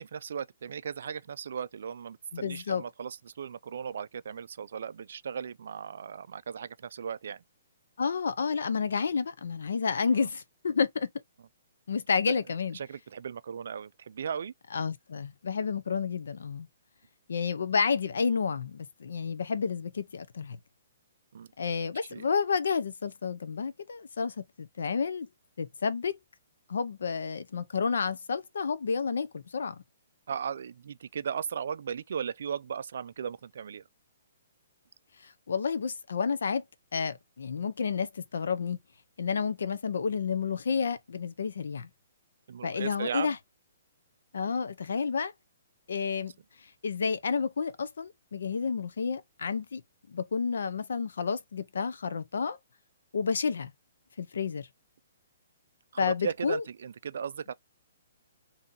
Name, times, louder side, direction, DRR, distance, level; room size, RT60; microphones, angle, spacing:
voice 1, 0.0-7.4 10.1-10.3 12.3-12.4 12.7-14.5 21.3-21.5 22.0-22.3 30.3-33.8 42.5-43.4 55.9-57.5, right 7 dB, 60° right, 0.3 m, -37 dB
voice 2, 2.3-2.8 8.0-11.1 11.9-12.8 14.7-16.7 17.3-20.6 21.6-25.3 25.6-26.2 26.7-29.8 35.2-36.6 36.9-38.8 39.2-41.9 42.6-43.4 44.3-45.3 45.9-46.3 46.8-49.8 50.1-52.6 53.1-53.7 54.2-54.7 56.0-56.6, left 5 dB, 80° left, 0.5 m, -30 dB
2.7 x 2.7 x 3.7 m
hypercardioid pair, 175°, 0 cm